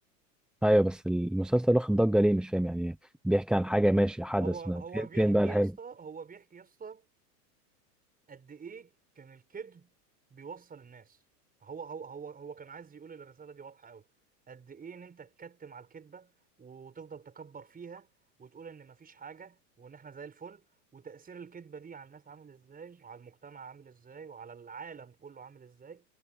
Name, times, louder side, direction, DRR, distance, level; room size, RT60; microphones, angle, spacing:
voice 1, 0.6-3.0 3.2-5.7, right 1 dB, ahead, 0.7 m, -26 dB
voice 2, 4.3-7.1 8.3-9.9 10.3-11.2 11.6-14.0 14.5-16.3 16.6-18.1 18.4-20.6 20.9-26.0, right 6 dB, 20° right, 5.7 m, -46 dB
hypercardioid pair, 115°, 48 cm